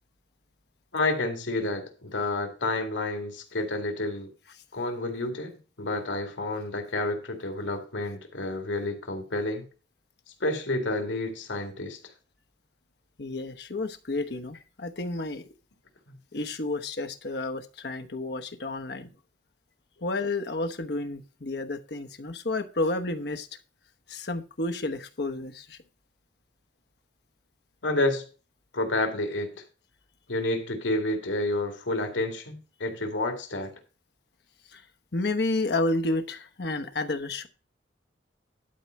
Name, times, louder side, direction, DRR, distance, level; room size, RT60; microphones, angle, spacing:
voice 1, 0.9-4.3 4.7-9.7 10.4-12.0 27.8-28.2 28.7-29.5 30.3-33.7, left 2 dB, 85° left, 5 dB, 2.2 m, -29 dB
voice 2, 13.2-15.4 16.3-19.1 20.0-23.5 24.1-25.8 34.7-34.8 35.1-37.5, left 2 dB, 60° left, 8 dB, 1.0 m, -31 dB
11.5 x 4.5 x 6.3 m, 0.34 s
head